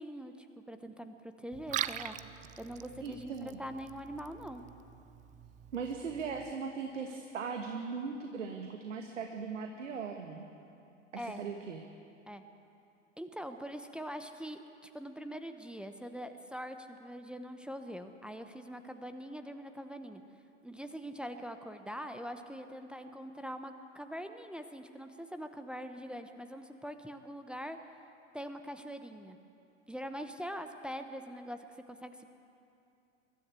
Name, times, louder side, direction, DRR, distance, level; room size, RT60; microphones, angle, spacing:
voice 1, 0.0-2.2 2.6-4.6 11.2-11.4 12.3-12.4 13.2-20.2 20.6-27.8 28.3-29.4 29.9-31.6 31.9-32.3, equal, 5° right, 7 dB, 0.9 m, -43 dB
Liquid, 1.5-6.5, right 12 dB, 20° right, 0.5 m, -43 dB
voice 2, 3.0-3.6 5.7-10.5 11.1-11.8, right 5 dB, 75° right, 4 dB, 1.6 m, -39 dB
23.0 x 13.5 x 8.3 m, 2.7 s
figure-of-eight pair, 90°, 38 cm